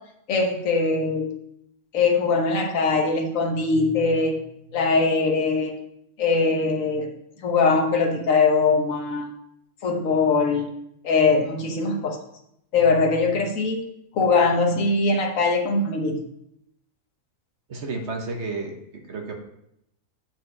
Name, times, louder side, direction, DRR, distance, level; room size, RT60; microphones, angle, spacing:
voice 1, 0.3-1.3 1.9-4.4 4.7-5.7 6.2-7.1 7.4-9.3 9.8-10.7 11.0-12.2 12.7-13.9 14.1-16.2, left 4 dB, 75° left, 2 dB, 1.5 m, -21 dB
voice 2, 17.7-19.3, right 3 dB, 55° right, 3 dB, 1.4 m, -32 dB
7.7 x 4.8 x 5.3 m, 0.77 s
omnidirectional pair, 1.4 m